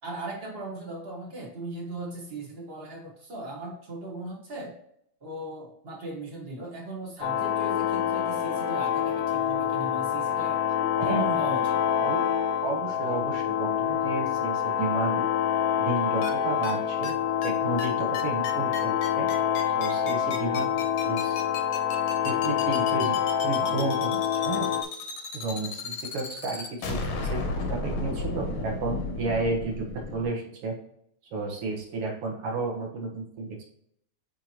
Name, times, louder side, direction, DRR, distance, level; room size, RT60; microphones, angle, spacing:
voice 1, 0.0-4.8 5.2-10.6 11.0-11.9, right 2 dB, 30° right, -2 dB, 1.2 m, -38 dB
sound 1, 7.2-24.8, left 9 dB, 80° left, 1.6 m, -26 dB
voice 2, 11.0-11.3 12.0-12.2 12.6-15.3 15.8-17.1 17.4-19.3 19.8-20.7 21.0-21.4 22.2-24.7 25.3-27.4 27.7-29.9 30.1-30.7 31.3-33.7, right 3 dB, 60° right, 0 dB, 2.0 m, -32 dB
sound 2, 16.2-16.3 16.6-16.7 17.0-17.1 17.4-17.5 17.8-17.9 18.1-30.3, left 3 dB, 60° left, 1.5 m, -33 dB
8.5 x 3.7 x 3.0 m, 0.71 s
omnidirectional pair, 3.4 m